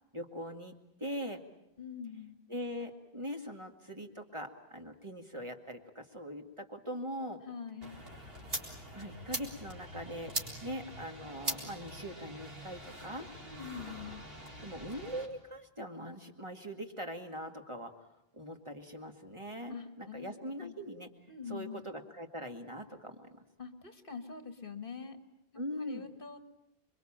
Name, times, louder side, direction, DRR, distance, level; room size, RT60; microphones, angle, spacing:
voice 1, 0.1-0.7 1.0-1.4 2.5-7.4 8.9-10.3 10.6-13.3 14.6-17.9 18.3-21.1 21.5-23.4 25.6-26.1, equal, 30° right, 4 dB, 2.1 m, -41 dB
voice 2, 1.8-2.4 7.5-8.0 13.4-14.3 19.7-20.8 21.3-21.8 23.6-25.2 25.8-26.4, left 6 dB, 60° left, 9 dB, 1.9 m, -44 dB
sound 1, 7.8-15.3, right 1 dB, 70° right, 4.4 m, -42 dB
27.0 x 22.5 x 8.8 m, 0.85 s
omnidirectional pair, 1.0 m